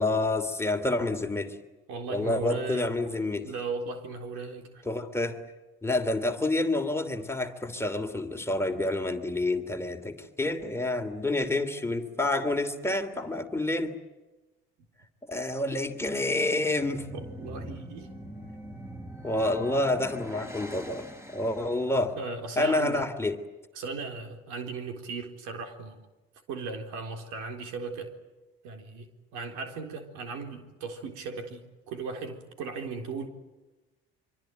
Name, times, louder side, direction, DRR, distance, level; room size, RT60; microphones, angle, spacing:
voice 1, 0.0-1.5 2.1-3.5 4.8-5.4 5.8-14.0 15.2-17.1 19.2-22.2 22.6-23.4, left 2 dB, 10° left, 5 dB, 3.0 m, -28 dB
voice 2, 1.9-4.8 17.1-18.1 22.1-23.1 23.7-26.0 26.5-28.1 28.6-33.3, right 4 dB, 75° right, 5 dB, 4.0 m, -37 dB
sound 1, 16.7-22.0, equal, 10° right, 4.7 m, -43 dB
25.5 x 24.5 x 9.3 m, 1.1 s
supercardioid pair, 75°, 29 cm